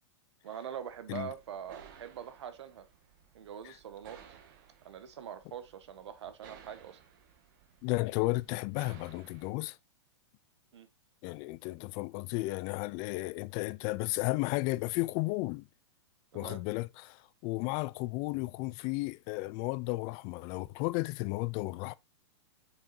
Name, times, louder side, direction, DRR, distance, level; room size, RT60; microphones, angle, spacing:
voice 1, 0.4-2.9 3.3-4.4 4.8-7.0 10.7-10.9 16.3-16.6, right 9 dB, 75° right, 1.7 m, -44 dB
sound 1, 0.8-9.5, right 8 dB, 45° right, 1.7 m, -58 dB
voice 2, 7.8-9.8 11.2-15.7 16.3-21.9, left 22 dB, 25° left, 0.3 m, -33 dB
8.5 x 6.4 x 2.7 m
supercardioid pair, 165°, 14 cm